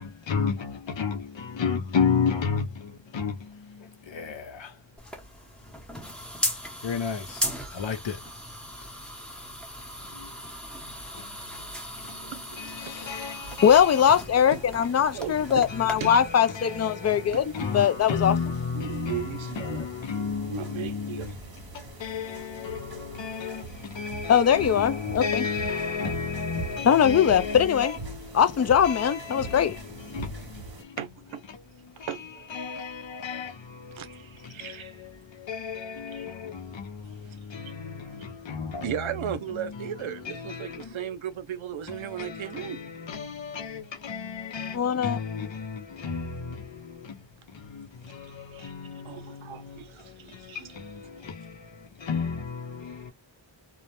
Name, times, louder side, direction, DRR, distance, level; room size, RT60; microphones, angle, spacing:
voice 1, 0.0-4.7 6.8-8.2 10.1-10.3 12.1-12.2 12.6-13.7 15.3-15.4 15.7-16.2 16.5-21.3 22.1-22.3 22.6-28.4 28.8-29.8 30.1-31.0 31.5-31.6 32.0-32.1 32.5-38.9 39.2-39.3 39.6-39.9 40.1-40.9 41.9-46.8 47.5-51.6 52.0-53.1, left 5 dB, 70° left, 0.8 m, -33 dB
sound 1, 5.0-15.9, equal, ahead, 0.8 m, -37 dB
voice 2, 12.3-12.8 13.5-13.6 14.5-14.6 15.1-15.6 16.0-16.1 17.3-17.4 18.7-21.3 31.0-31.4 32.1-32.5 34.0-34.9 36.1-36.3 38.8-42.8 48.5-48.7 49.1-50.8, right 9 dB, 75° right, 0.6 m, -36 dB
voice 3, 12.8-13.4 13.6-18.4 24.3-25.5 26.8-28.0 28.3-29.8 44.7-45.2, left 8 dB, 35° left, 0.4 m, -21 dB
sound 2, 13.4-30.8, right 4 dB, 50° right, 0.8 m, -43 dB
2.3 x 2.1 x 2.8 m
wide cardioid pair, 90°, 47 cm